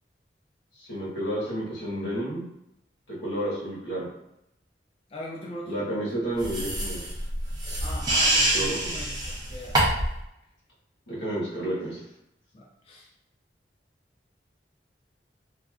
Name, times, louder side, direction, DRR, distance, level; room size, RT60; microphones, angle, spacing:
voice 1, 0.9-2.5 3.1-4.1 5.6-7.0 8.5-8.9 11.1-12.0, right 1 dB, 85° left, -7 dB, 1.3 m, -31 dB
voice 2, 5.1-5.9 7.8-10.0 12.5-13.1, equal, 35° left, -3 dB, 0.3 m, -40 dB
sound 1, 6.4-10.2, right 1 dB, 25° right, 0.6 m, -26 dB
3.3 x 2.5 x 2.3 m, 0.82 s
head